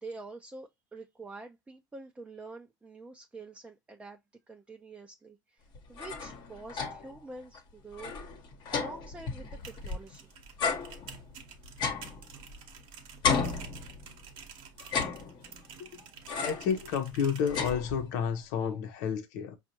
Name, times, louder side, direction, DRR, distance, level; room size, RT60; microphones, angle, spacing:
voice 1, 0.0-4.2 4.5-8.1 8.7-10.3, right 2 dB, 10° right, 0.5 m, -46 dB
sound 1, 5.7-7.2 7.5-7.6 7.9-10.1 10.6-12.8 13.2-14.3 14.8-15.7 16.3-16.8 17.1-18.3, left 5 dB, 50° left, 1.1 m, -34 dB
sound 2, 9.4-17.8, right 7 dB, 60° right, 1.0 m, -50 dB
voice 2, 16.3-19.6, left 7 dB, 75° left, 0.8 m, -31 dB
5.0 x 2.4 x 2.8 m
supercardioid pair, 95°, 10 cm